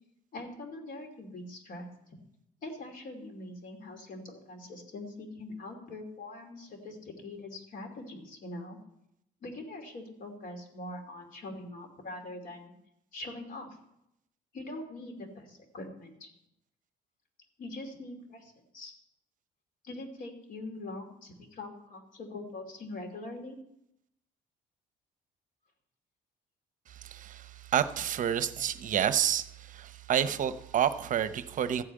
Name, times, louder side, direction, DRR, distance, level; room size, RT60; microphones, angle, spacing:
voice 1, 0.3-2.2 2.6-8.8 9.4-12.7 13.1-13.7 14.5-16.3 17.6-18.9 19.8-23.6, left 2 dB, 55° left, 2 dB, 2.9 m, -43 dB
voice 2, 27.0-31.8, right 9 dB, 50° right, 12 dB, 0.7 m, -29 dB
14.0 x 4.9 x 8.7 m, 0.80 s
cardioid pair, 110°, 17 cm